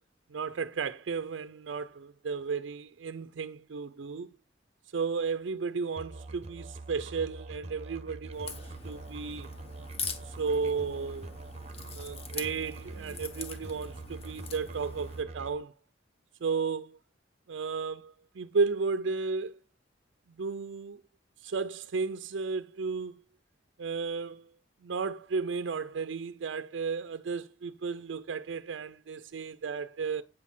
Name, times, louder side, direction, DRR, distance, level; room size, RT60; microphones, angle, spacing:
voice 1, 0.3-4.3 4.9-9.5 10.2-11.3 11.9-15.7 16.4-17.0 17.5-19.6 20.4-21.0 21.4-23.2 23.8-24.5 24.8-30.2, right 5 dB, 75° right, 0.4 m, -33 dB
Musical instrument, 6.0-15.6, right 2 dB, 35° right, 0.8 m, -44 dB
Crack, 8.3-15.2, left 5 dB, 30° left, 1.1 m, -43 dB
8.8 x 4.1 x 7.3 m
head